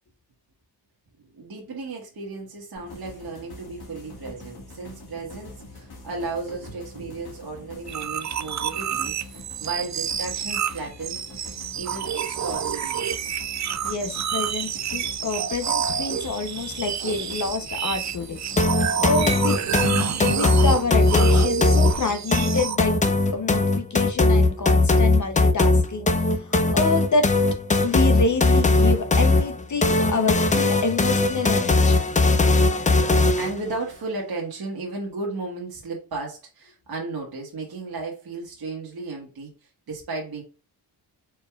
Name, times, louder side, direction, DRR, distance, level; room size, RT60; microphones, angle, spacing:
voice 1, 1.2-13.4 14.7-14.8 31.3-31.5 33.4-40.4, right 3 dB, 60° right, -2 dB, 1.4 m, -35 dB
sound 1, 2.7-21.9, left 2 dB, 60° left, 1.8 m, -44 dB
sound 2, 7.9-22.8, right 8 dB, 45° right, 0.5 m, -28 dB
voice 2, 13.8-18.4 18.8-19.6 20.2-27.3 27.8-32.0, left 3 dB, 45° left, 6 dB, 0.8 m, -27 dB
sound 3, 18.6-33.6, left 3 dB, 20° left, 0.4 m, -19 dB
4.7 x 4.4 x 2.3 m, 0.33 s
wide cardioid pair, 130°, 42 cm